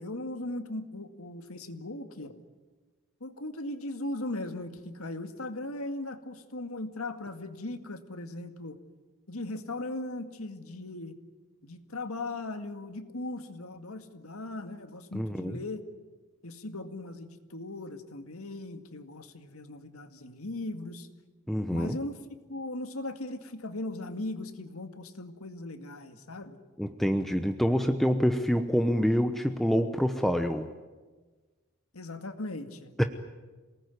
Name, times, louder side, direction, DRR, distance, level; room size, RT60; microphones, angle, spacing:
voice 1, 0.0-2.4 3.2-8.8 9.3-11.1 11.6-15.8 16.4-21.1 21.7-22.2 22.5-26.6 31.9-32.9, left 2 dB, 75° left, 8 dB, 2.1 m, -38 dB
voice 2, 15.1-15.6 21.5-22.0 26.8-30.7 33.0-33.1, equal, ahead, 6 dB, 0.9 m, -26 dB
27.5 x 19.0 x 9.6 m, 1.3 s
head